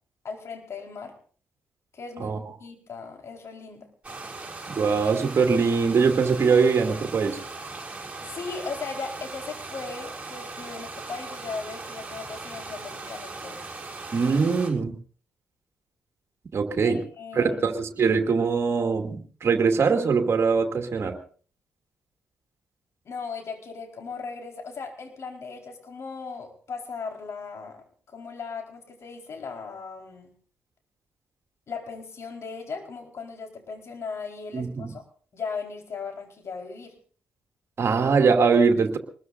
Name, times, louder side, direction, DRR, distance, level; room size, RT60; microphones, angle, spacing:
voice 1, 0.2-1.2 1.9-3.9 8.2-13.6 16.8-17.6 23.0-30.3 31.7-35.0 35.3-37.0, left 5 dB, 55° left, 3 dB, 4.6 m, -37 dB
sound 1, 4.0-14.7, right 3 dB, 20° right, 6.2 m, -39 dB
voice 2, 4.8-7.4 14.1-14.9 16.5-17.0 17.3-21.2 34.5-34.9 37.8-39.0, right 5 dB, 50° right, 4 dB, 2.5 m, -22 dB
24.0 x 21.0 x 2.7 m, 0.42 s
hypercardioid pair, 40°, 6 cm